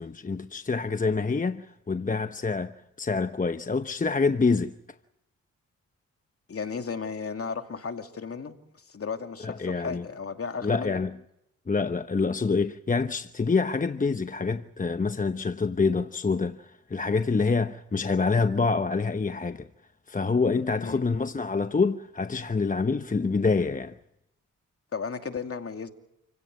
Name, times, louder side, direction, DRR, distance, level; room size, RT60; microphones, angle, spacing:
voice 1, 0.0-4.7 9.4-10.0 10.6-11.1 11.7-19.7 20.1-23.9, left 4 dB, 25° left, 0.9 m, -26 dB
voice 2, 6.5-8.6 8.9-11.0 20.8-21.0 24.9-25.9, left 5 dB, 50° left, 2.7 m, -34 dB
29.5 x 17.0 x 8.4 m
cardioid pair, 60°, 31 cm